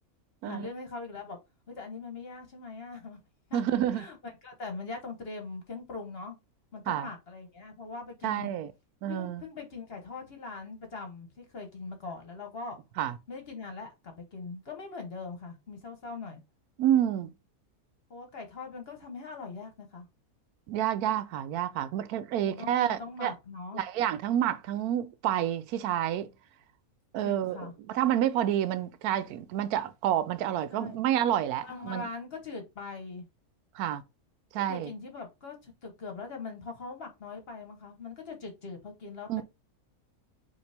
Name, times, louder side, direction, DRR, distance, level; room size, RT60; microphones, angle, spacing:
voice 1, 0.4-1.4 1.7-3.2 3.5-6.4 6.7-8.5 9.1-12.8 13.3-16.4 18.1-20.1 22.4-23.8 27.2-27.7 30.7-31.0 31.6-33.3 34.7-39.4, left 4 dB, 45° left, 1.2 m, -41 dB
voice 2, 3.5-4.0 6.9-7.1 8.2-8.7 9.0-9.4 13.0-13.2 16.8-17.3 20.7-23.3 23.7-26.3 27.1-32.1 33.7-34.0 34.5-34.9 39.3-39.4, right 11 dB, 85° right, 1.1 m, -29 dB
5.2 x 2.9 x 3.4 m
omnidirectional pair, 1.5 m